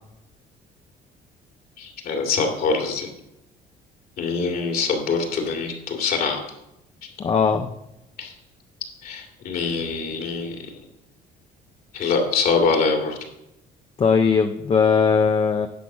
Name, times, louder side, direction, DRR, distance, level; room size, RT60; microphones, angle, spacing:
voice 1, 1.8-3.1 4.2-6.4 8.2-8.3 9.0-10.7 11.9-13.2, left 4 dB, 65° left, 3 dB, 2.6 m, -24 dB
voice 2, 7.2-7.7 14.0-15.7, left 5 dB, 30° left, 6 dB, 0.7 m, -19 dB
10.0 x 6.8 x 6.1 m, 0.88 s
cardioid pair, 110°, 17 cm